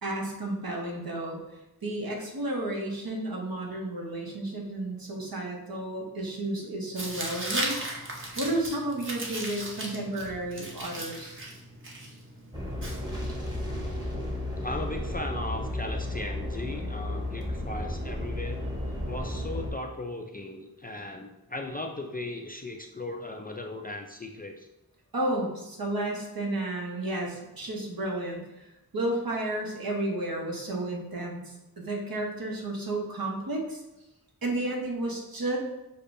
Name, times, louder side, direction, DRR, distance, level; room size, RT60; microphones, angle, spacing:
voice 1, 0.0-11.4 25.1-28.7 28.9-33.8 34.4-35.6, right 1 dB, 65° right, -1 dB, 1.1 m, -32 dB
Tearing, 7.0-13.6, right 1 dB, 30° right, 0.8 m, -37 dB
sound 1, 12.5-19.7, left 1 dB, 10° right, 1.1 m, -33 dB
voice 2, 14.6-18.6 19.1-24.7, left 2 dB, 25° left, 3 dB, 0.3 m, -37 dB
6.5 x 2.2 x 2.6 m, 0.95 s
wide cardioid pair, 50°, 38 cm